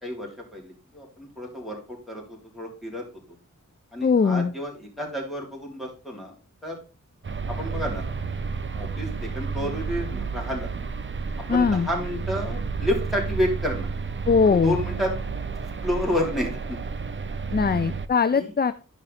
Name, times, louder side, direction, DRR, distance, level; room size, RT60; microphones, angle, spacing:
voice 1, 0.0-3.0 3.9-6.3 6.6-6.8 7.5-8.0 8.7-10.7 11.5-13.9 14.4-15.1 15.6-16.8 17.5-17.8 18.3-18.5, equal, ahead, -2 dB, 3.5 m, -30 dB
voice 2, 4.0-4.5 11.5-11.9 14.3-14.8 17.5-18.7, left 5 dB, 30° left, 11 dB, 0.5 m, -20 dB
sound 1, 7.2-18.1, right 4 dB, 40° right, 0.6 m, -31 dB
11.5 x 5.3 x 4.1 m, 0.34 s
wide cardioid pair, 85°, 32 cm